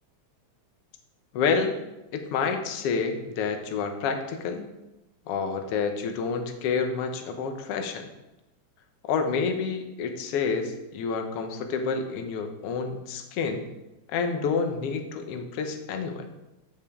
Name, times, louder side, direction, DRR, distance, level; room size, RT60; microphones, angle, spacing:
voice 1, 1.3-1.7 2.1-4.6 5.3-8.1 9.1-13.6 14.1-16.3, left 5 dB, 70° left, 5 dB, 1.5 m, -28 dB
14.0 x 4.9 x 3.6 m, 0.99 s
omnidirectional pair, 3.5 m